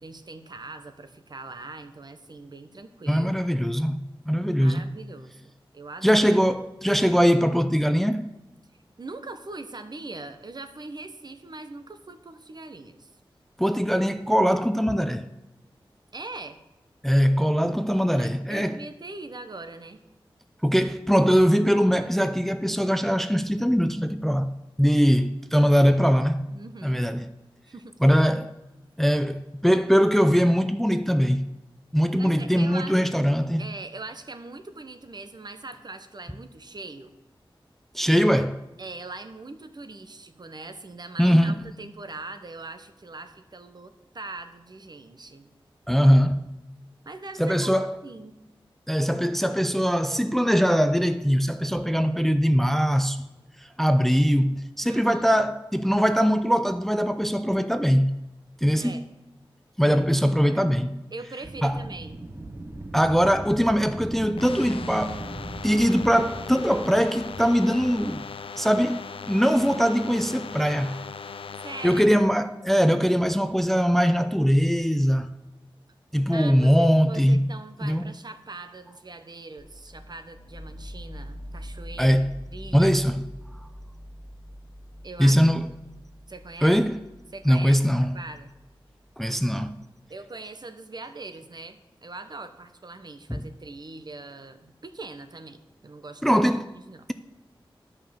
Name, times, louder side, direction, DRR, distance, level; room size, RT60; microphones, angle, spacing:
voice 1, 0.0-3.4 4.6-6.2 9.0-13.1 16.1-16.6 18.1-20.0 26.5-27.1 27.7-27.9 32.1-33.1 33.6-37.1 38.8-45.5 47.0-48.4 54.8-55.4 58.8-59.1 61.1-62.2 71.6-72.2 76.3-82.2 82.5-83.0 85.0-85.4 86.3-86.8 87.3-88.5 90.1-96.4 96.7-97.1, right 3 dB, 50° right, 0.9 m, -41 dB
voice 2, 3.1-4.0 4.3-4.8 6.0-8.3 13.6-15.3 17.0-18.8 20.6-24.5 24.8-26.5 26.8-27.3 28.0-28.5 29.0-31.5 31.9-33.6 37.9-38.6 41.2-41.6 45.9-46.5 47.4-47.9 48.9-53.2 53.8-58.1 58.6-59.0 59.8-60.9 61.6-61.8 62.9-65.2 65.6-68.3 68.6-71.0 71.8-75.3 76.1-77.4 77.8-78.0 82.0-82.3 82.7-83.2 85.2-85.7 86.6-87.0 87.5-88.1 89.2-89.8 93.3-93.4 96.2-96.7, equal, 5° left, 0.4 m, -21 dB
Wind, 61.4-68.4, right 2 dB, 25° right, 0.8 m, -39 dB
sound 1, 64.4-72.1, left 6 dB, 85° left, 0.4 m, -39 dB
sound 2, 79.6-89.4, equal, 60° left, 1.6 m, -44 dB
10.5 x 5.5 x 7.1 m
wide cardioid pair, 65°, 9 cm